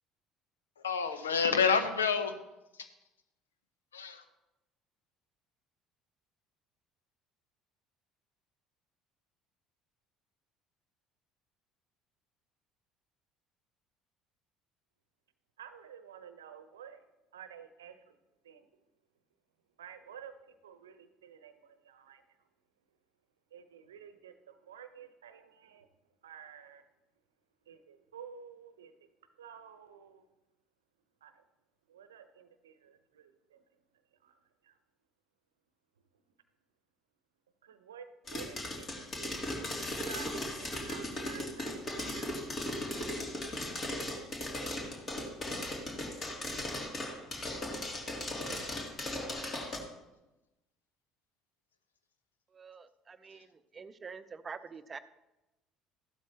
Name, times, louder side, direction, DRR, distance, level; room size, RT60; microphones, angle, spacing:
voice 1, 0.8-2.4 2.8-2.9 3.9-4.2 47.1-47.2, left 6 dB, 80° left, 10 dB, 0.8 m, -28 dB
voice 2, 15.6-17.0 17.3-18.1 18.4-18.6 19.8-20.3 20.6-22.2 23.5-25.9 26.2-26.8 27.7-28.9 29.4-30.2 31.2-31.3 31.9-33.6 34.2-34.3 34.6-34.7 37.6-42.3 48.2-48.8, right 8 dB, 80° right, 10 dB, 0.8 m, -51 dB
sound 1, 38.3-49.8, left 1 dB, 35° left, 2.8 m, -37 dB
voice 3, 52.5-55.0, right 5 dB, 30° right, 12 dB, 0.7 m, -46 dB
15.0 x 12.0 x 2.9 m, 1.0 s
figure-of-eight pair, 60°, 0 cm